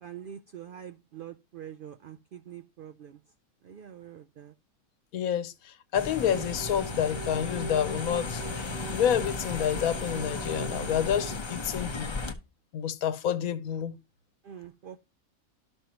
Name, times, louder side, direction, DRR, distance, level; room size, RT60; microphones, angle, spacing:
voice 1, 0.0-3.2 3.6-4.5 14.4-15.0, right 9 dB, 85° right, 0.4 m, -45 dB
voice 2, 5.1-12.2 12.7-14.0, left 9 dB, 85° left, 1.2 m, -29 dB
sound 1, 5.9-12.3, left 4 dB, 30° left, 0.5 m, -35 dB
sound 2, 6.3-11.4, right 5 dB, 55° right, 1.0 m, -42 dB
12.5 x 5.4 x 2.9 m
omnidirectional pair, 1.5 m